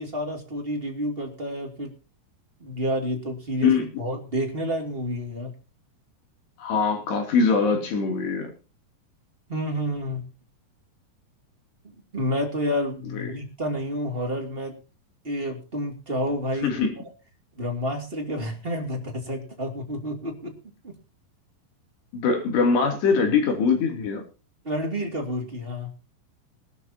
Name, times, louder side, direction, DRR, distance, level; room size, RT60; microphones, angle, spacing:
voice 1, 0.0-1.9 2.6-5.5 9.5-10.2 12.1-14.7 15.2-16.7 17.0-17.1 17.5-20.5 20.8-20.9 24.6-25.9, equal, 20° right, 2 dB, 2.1 m, -29 dB
voice 2, 6.6-8.5 13.1-13.3 16.6-16.9 22.1-24.2, left 5 dB, 85° left, 3 dB, 5.2 m, -22 dB
21.5 x 12.0 x 2.9 m, 0.32 s
omnidirectional pair, 4.7 m